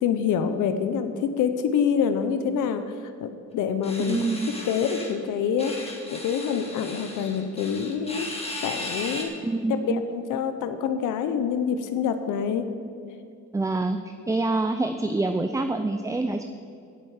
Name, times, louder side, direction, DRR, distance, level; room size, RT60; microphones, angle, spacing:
voice 1, 0.0-4.2 4.6-8.3 8.6-9.3 9.7-12.7, left 7 dB, 85° left, 9 dB, 0.9 m, -26 dB
sound 1, 3.8-5.2 5.6-9.2, left 2 dB, 20° left, 2.1 m, -36 dB
voice 2, 4.0-4.5 9.4-10.0 13.5-14.0 14.3-16.5, right 2 dB, 10° right, 8 dB, 0.5 m, -26 dB
16.5 x 7.9 x 4.9 m, 2.6 s
cardioid pair, 90°, 30 cm